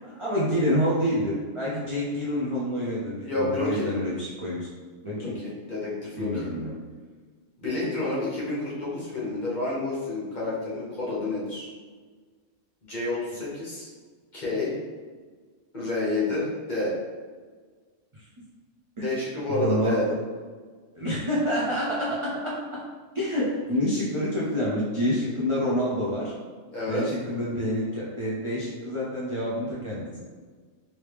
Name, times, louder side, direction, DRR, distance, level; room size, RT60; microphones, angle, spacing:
voice 1, 0.2-4.7 5.0-5.4 6.2-6.7 18.1-18.3 19.0-19.1 19.5-20.2 20.9-22.8 23.1-26.3 26.9-30.2, equal, 40° right, -7 dB, 0.4 m, -27 dB
voice 2, 3.2-3.9 5.2-6.5 7.6-11.7 12.8-13.9 14.3-14.7 15.7-16.9 19.0-20.0 26.7-27.0, left 2 dB, 40° left, -7 dB, 1.0 m, -29 dB
3.1 x 2.8 x 3.3 m, 1.5 s
omnidirectional pair, 1.3 m